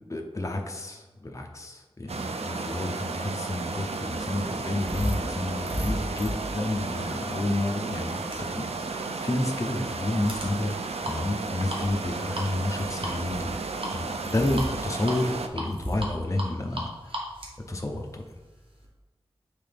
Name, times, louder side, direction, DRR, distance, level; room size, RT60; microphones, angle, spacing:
voice 1, 0.0-10.8 11.0-13.6 13.9-17.1 17.7-18.2, left 1 dB, 30° left, 2 dB, 0.7 m, -30 dB
sound 1, 2.1-15.5, right 4 dB, 80° right, 0.4 m, -33 dB
sound 2, 4.6-18.8, equal, 55° right, 1.3 m, -37 dB
7.6 x 3.8 x 3.4 m, 1.2 s
wide cardioid pair, 70°, 10 cm